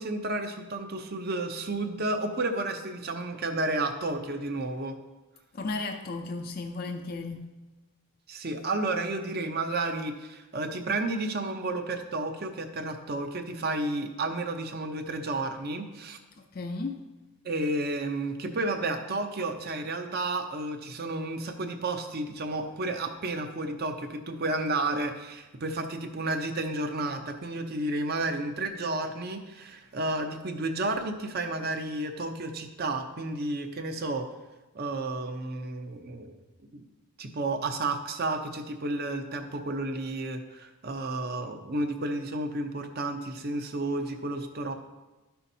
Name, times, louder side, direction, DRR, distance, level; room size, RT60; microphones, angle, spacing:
voice 1, 0.0-5.0 8.3-16.2 17.4-34.3 34.7-36.4 36.7-36.9 37.2-44.7, right 2 dB, 45° right, 0.7 m, -32 dB
voice 2, 5.5-7.5 16.5-17.0, left 3 dB, 40° left, 0.4 m, -34 dB
12.0 x 5.7 x 2.7 m
head